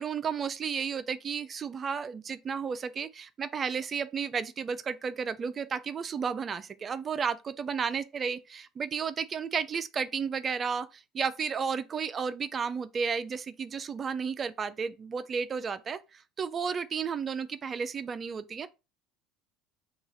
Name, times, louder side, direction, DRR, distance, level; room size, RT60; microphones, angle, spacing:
voice 1, 0.0-18.7, right 6 dB, 35° right, 0.4 m, -33 dB
2.9 x 2.3 x 4.0 m
supercardioid pair, 85°, 0 cm